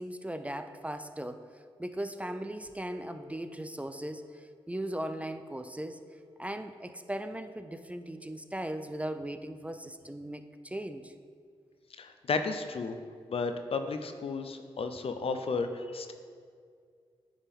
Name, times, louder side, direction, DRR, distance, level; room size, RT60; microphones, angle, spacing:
voice 1, 0.0-1.4 1.8-6.0 6.4-11.1, right 1 dB, 10° right, 9 dB, 0.4 m, -38 dB
Telephone, 2.2-2.3 2.8-3.4 3.8-4.4 4.9-5.4 5.9-6.4 6.9-7.2 8.2-8.4, left 3 dB, 75° right, 1.1 m, -54 dB
voice 2, 12.0-13.0 13.3-16.1, left 4 dB, 60° left, 7 dB, 0.5 m, -33 dB
9.7 x 3.6 x 3.6 m, 2.1 s
supercardioid pair, 45°, 11 cm